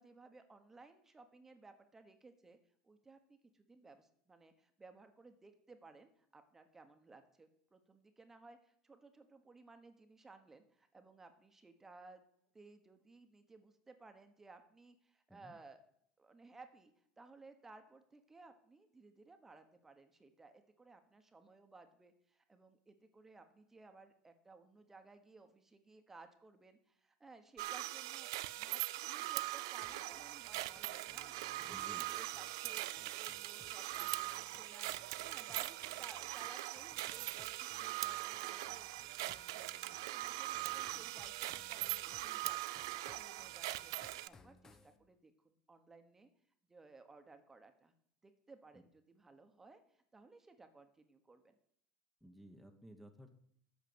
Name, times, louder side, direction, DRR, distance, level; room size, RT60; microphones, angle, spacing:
voice 1, 0.0-2.6 2.8-12.2 12.5-15.8 16.2-28.3 28.6-46.3 46.7-47.9 48.2-51.6, right 3 dB, 15° right, 7 dB, 1.3 m, -60 dB
sound 1, 27.6-44.3, right 17 dB, 80° right, 0.4 m, -41 dB
sound 2, 29.8-45.0, left 3 dB, 25° left, 0.9 m, -64 dB
voice 2, 31.6-32.1 48.7-48.8 52.2-53.3, equal, ahead, 4 dB, 1.2 m, -56 dB
8.4 x 5.9 x 7.9 m, 0.68 s
supercardioid pair, 100°, 2 cm